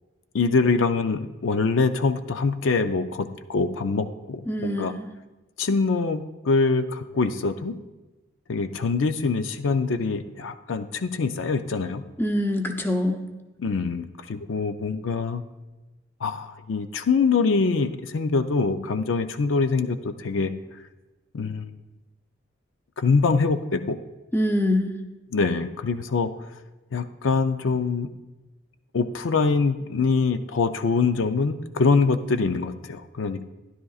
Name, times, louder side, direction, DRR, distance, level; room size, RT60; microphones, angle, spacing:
voice 1, 0.3-4.9 5.6-7.7 8.5-12.0 13.6-15.4 16.2-20.5 21.3-21.7 23.0-24.0 25.3-26.3 26.9-28.1 28.9-33.4, left 4 dB, 75° left, 9 dB, 0.5 m, -24 dB
voice 2, 4.5-5.1 12.2-13.3 24.3-25.0, left 1 dB, 10° left, 4 dB, 0.6 m, -24 dB
13.0 x 11.0 x 2.4 m, 1.1 s
head